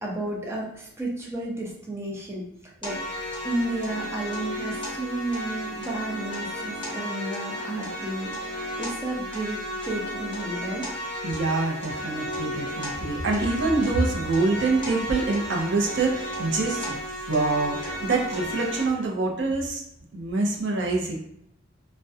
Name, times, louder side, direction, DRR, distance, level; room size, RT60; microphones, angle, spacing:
voice 1, 0.0-2.5 2.8-10.8, right 2 dB, 15° right, -3 dB, 0.6 m, -32 dB
sound 1, 2.8-18.8, equal, 25° left, 0.9 m, -33 dB
voice 2, 11.2-16.9 17.3-19.8 20.1-21.2, right 3 dB, 65° right, 0 dB, 0.5 m, -25 dB
2.3 x 2.1 x 2.6 m, 0.75 s
head